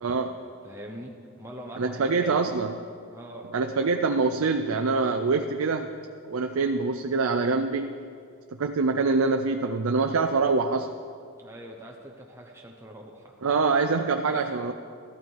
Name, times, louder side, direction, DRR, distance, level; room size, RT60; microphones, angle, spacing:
voice 1, 0.0-0.3 1.8-2.8 3.5-5.9 6.2-8.0 8.6-10.9 13.4-14.7, right 4 dB, 85° right, 5 dB, 0.5 m, -25 dB
voice 2, 0.6-2.5 3.1-3.5 11.4-13.3 14.3-14.7, equal, 10° right, -1 dB, 0.9 m, -43 dB
13.0 x 12.0 x 4.6 m, 2.3 s
head